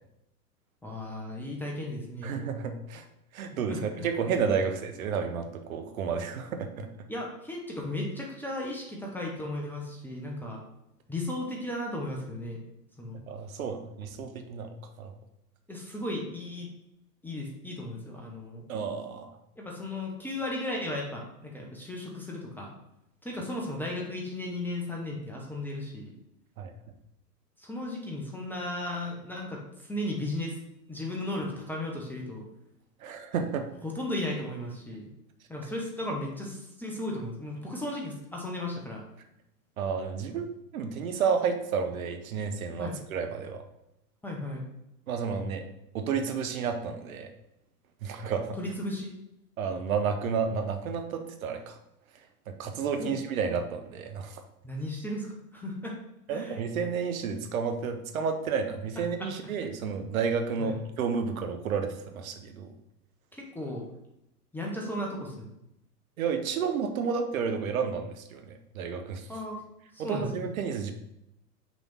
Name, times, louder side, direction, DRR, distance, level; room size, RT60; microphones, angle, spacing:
voice 1, 0.8-2.3 3.7-4.1 7.1-10.6 11.1-12.6 13.0-13.2 15.7-16.7 17.2-18.6 19.6-22.7 23.2-26.1 27.6-30.6 30.9-32.4 33.8-35.1 35.5-39.0 42.8-43.0 44.2-44.6 48.6-49.1 53.0-53.2 54.6-56.0 56.3-56.6 59.2-59.3 60.6-60.8 63.3-63.8 64.5-65.5 69.3-69.6 69.9-70.5, left 1 dB, 5° left, -2 dB, 0.8 m, -35 dB
voice 2, 2.2-3.0 3.3-6.9 13.3-15.1 18.7-19.3 26.6-26.7 33.0-33.7 39.8-43.6 45.1-45.6 45.9-47.3 48.0-48.6 49.6-51.8 52.5-54.4 56.3-62.7 66.2-68.4 68.7-69.3 70.0-70.9, right 6 dB, 55° right, 6 dB, 1.0 m, -31 dB
6.2 x 3.4 x 5.6 m, 0.83 s
figure-of-eight pair, 105°, 48 cm